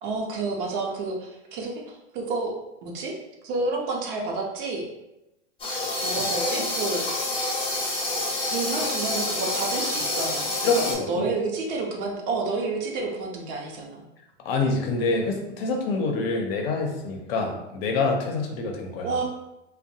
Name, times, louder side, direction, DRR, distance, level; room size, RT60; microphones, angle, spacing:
voice 1, 0.0-2.5 2.8-3.1 3.4-4.8 6.0-7.0 8.5-14.0 19.0-19.2, right 3 dB, 50° right, 0 dB, 0.7 m, -30 dB
sound 1, 5.6-10.9, left 2 dB, 15° left, 0.6 m, -27 dB
voice 2, 10.6-11.3 14.4-19.2, left 3 dB, 55° left, 2 dB, 0.6 m, -26 dB
2.5 x 2.2 x 2.7 m, 0.94 s
hypercardioid pair, 110°, 34 cm